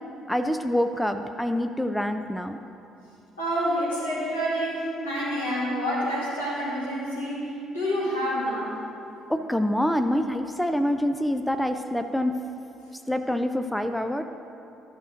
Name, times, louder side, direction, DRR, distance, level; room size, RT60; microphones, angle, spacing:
voice 1, 0.3-2.6 9.3-12.4 13.1-14.2, left 1 dB, 5° left, 8 dB, 0.5 m, -26 dB
voice 2, 3.4-8.7, equal, 85° left, -9 dB, 2.8 m, -28 dB
13.5 x 6.3 x 5.0 m, 2.8 s
figure-of-eight pair, 50°, 0 cm